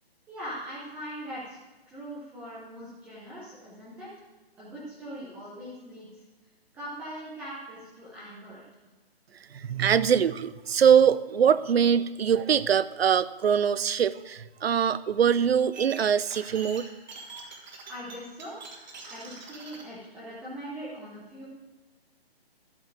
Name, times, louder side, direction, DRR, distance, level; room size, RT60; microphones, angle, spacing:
voice 1, 0.3-1.6 1.9-4.1 4.6-6.2 6.7-8.6 17.9-18.5 19.0-21.5, equal, 5° right, -9 dB, 0.7 m, -41 dB
voice 2, 9.5-16.9, right 8 dB, 75° right, 17 dB, 0.6 m, -23 dB
sound 1, 15.7-19.8, right 3 dB, 45° right, 1.7 m, -44 dB
12.5 x 4.6 x 7.4 m, 1.2 s
hypercardioid pair, 160°, 31 cm